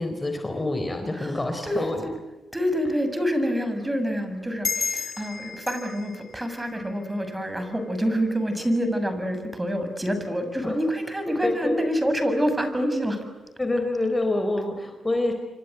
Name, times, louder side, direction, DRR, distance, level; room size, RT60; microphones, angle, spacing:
voice 1, 0.0-2.0 10.6-10.8 11.4-11.8 13.6-15.3, left 2 dB, 20° left, 6 dB, 4.1 m, -26 dB
voice 2, 1.1-2.1 2.5-13.2, equal, 15° right, 8 dB, 7.1 m, -27 dB
sound 1, 4.6-7.7, left 5 dB, 45° left, 3.0 m, -33 dB
28.5 x 25.0 x 8.1 m, 1.1 s
cardioid pair, 70°, 0 cm